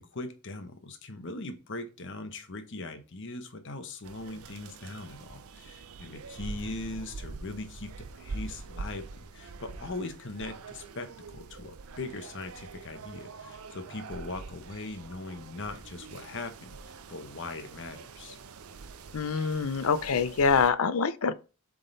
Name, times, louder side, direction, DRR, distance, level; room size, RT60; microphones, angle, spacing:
voice 1, 0.0-18.4, left 2 dB, 55° left, 1.0 m, -40 dB
sound 1, 4.0-20.7, right 4 dB, 80° right, 0.6 m, -44 dB
voice 2, 19.1-21.3, left 5 dB, 75° left, 0.6 m, -25 dB
7.3 x 3.7 x 4.0 m
head